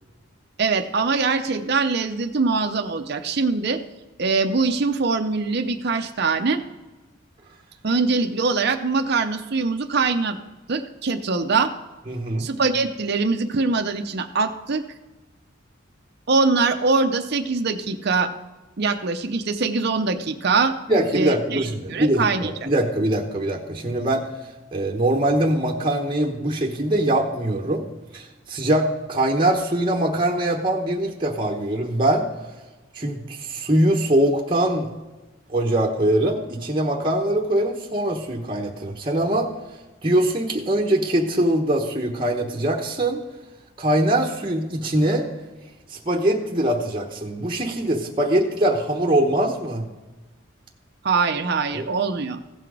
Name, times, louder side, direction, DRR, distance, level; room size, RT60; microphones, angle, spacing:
voice 1, 0.6-3.8 4.2-6.6 7.8-10.4 10.7-11.7 12.4-14.8 16.3-18.3 18.8-20.7 21.1-22.5 51.0-52.4, right 4 dB, 55° right, 6 dB, 0.7 m, -23 dB
voice 2, 12.1-12.5 20.9-24.2 24.7-27.8 28.1-32.3 32.9-34.9 35.5-39.5 40.0-43.2 43.8-45.3 45.9-49.9 51.7-51.8, right 1 dB, 25° right, -2 dB, 1.0 m, -22 dB
16.0 x 5.9 x 4.8 m, 1.2 s
head